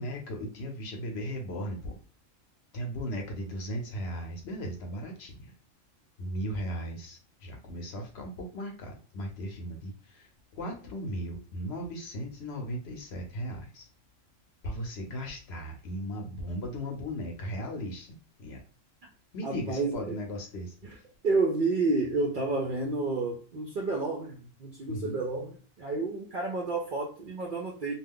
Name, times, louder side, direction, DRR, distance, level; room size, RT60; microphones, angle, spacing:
voice 1, 0.0-2.0 2.7-5.5 6.2-13.9 14.6-18.6 19.3-20.7 24.9-25.2, equal, 60° left, 0.9 m, -37 dB
voice 2, 19.4-20.2 20.8-21.0 21.2-27.9, right 3 dB, 60° right, 0.5 m, -30 dB
2.3 x 2.3 x 3.5 m
omnidirectional pair, 1.3 m